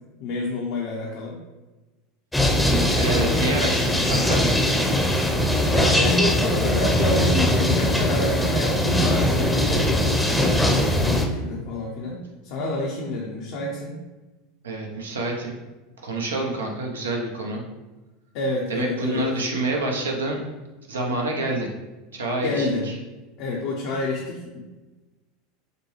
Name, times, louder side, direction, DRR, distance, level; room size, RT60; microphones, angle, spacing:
voice 1, 0.2-1.4 3.2-3.5 5.7-14.0 18.3-19.3 22.4-22.9 23.4-24.7, left 2 dB, 60° left, -3 dB, 0.7 m, -28 dB
sound 1, 2.3-11.3, left 1 dB, 5° left, 0.7 m, -21 dB
voice 2, 3.0-4.4 14.6-15.5 16.0-17.6 18.7-20.4 20.9-21.7 22.1-22.9, right 2 dB, 85° right, 1 dB, 0.8 m, -27 dB
6.7 x 2.2 x 3.1 m, 1.2 s
hypercardioid pair, 85°, 0 cm